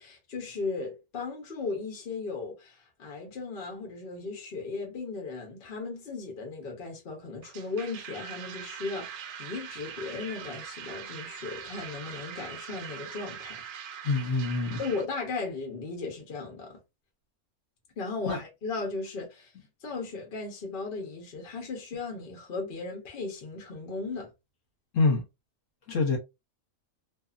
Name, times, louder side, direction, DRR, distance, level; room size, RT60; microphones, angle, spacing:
voice 1, 0.0-13.6 14.8-16.8 18.0-19.5 19.8-24.3, left 4 dB, 45° left, 1.0 m, -36 dB
sound 1, 7.4-15.1, right 8 dB, 65° right, 0.7 m, -42 dB
voice 2, 14.0-14.8 18.2-18.4 24.9-25.2 25.9-26.2, left 3 dB, 60° left, 1.3 m, -25 dB
2.7 x 2.7 x 2.4 m
omnidirectional pair, 1.6 m